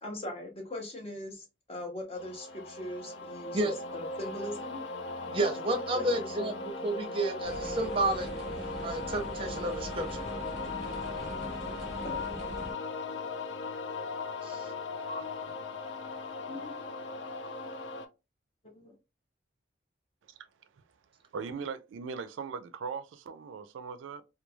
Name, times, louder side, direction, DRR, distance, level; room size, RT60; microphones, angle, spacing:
voice 1, 0.0-4.9 5.9-6.7 12.0-12.3 15.1-15.4 16.5-17.0 18.6-18.9, left 1 dB, 30° left, 0.7 m, -41 dB
sound 1, 2.2-18.1, left 3 dB, 70° left, 0.4 m, -38 dB
voice 2, 5.3-8.3 8.8-10.3 14.4-14.7, right 2 dB, 30° right, 0.6 m, -31 dB
sound 2, 7.4-12.7, right 1 dB, ahead, 1.2 m, -42 dB
voice 3, 21.3-24.2, right 5 dB, 85° right, 0.4 m, -39 dB
3.0 x 2.3 x 2.2 m
head